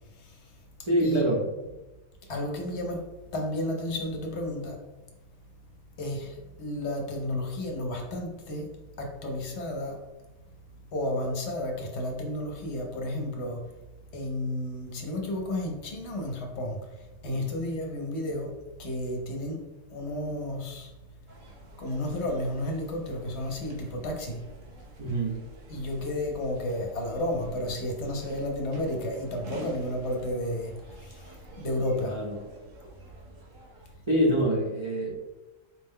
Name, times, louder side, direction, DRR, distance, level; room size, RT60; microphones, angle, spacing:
voice 1, 0.2-0.5 1.0-1.3 2.3-3.0 3.3-4.8 6.0-8.7 9.0-10.0 10.9-13.6 14.1-19.6 19.9-20.9 21.8-24.5 25.7-32.2, left 1 dB, 60° left, 1 dB, 0.9 m, -32 dB
voice 2, 0.8-1.4 17.3-17.5 25.0-25.4 32.1-32.3 34.1-35.2, equal, 40° right, -5 dB, 0.4 m, -25 dB
sound 1, 21.3-34.0, right 2 dB, 80° right, 1.2 m, -48 dB
4.5 x 2.1 x 3.6 m, 1.1 s
omnidirectional pair, 1.3 m